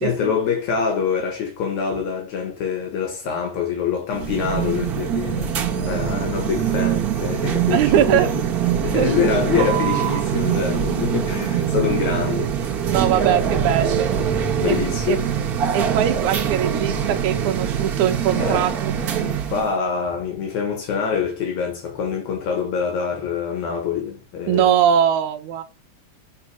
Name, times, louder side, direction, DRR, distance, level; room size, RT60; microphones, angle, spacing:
voice 1, 0.0-5.6 5.9-8.4 8.8-12.8 14.6-15.2 18.3-18.7 19.5-24.7, left 6 dB, 75° left, 2.7 m, -25 dB
sound 1, 4.1-19.7, right 8 dB, 55° right, 1.0 m, -23 dB
voice 2, 7.7-8.3 8.8-9.1 12.9-14.1 14.6-14.8 15.1-15.2 15.7-18.9 24.5-25.6, right 10 dB, 85° right, 2.1 m, -21 dB
6.8 x 4.2 x 4.7 m
omnidirectional pair, 3.4 m